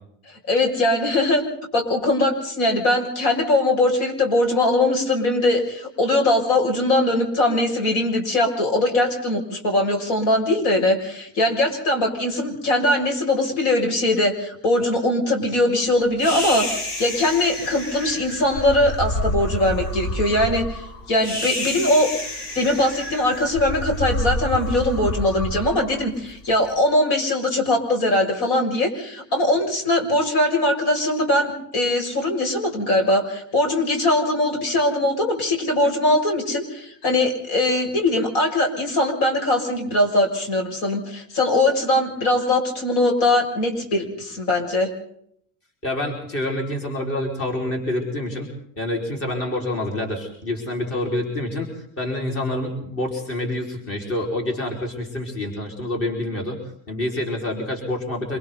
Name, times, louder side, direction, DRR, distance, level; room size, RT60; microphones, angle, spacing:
voice 1, 0.3-1.4 1.7-22.1 22.5-44.9, left 1 dB, 65° left, 3 dB, 6.9 m, -21 dB
sound 1, 16.2-26.6, left 1 dB, 50° left, 7.7 m, -29 dB
voice 2, 45.8-48.5 48.8-51.7 52.0-56.6 56.9-58.4, left 1 dB, 30° left, 1 dB, 5.6 m, -27 dB
27.0 x 25.5 x 4.1 m, 0.68 s
cardioid pair, 165°, 46 cm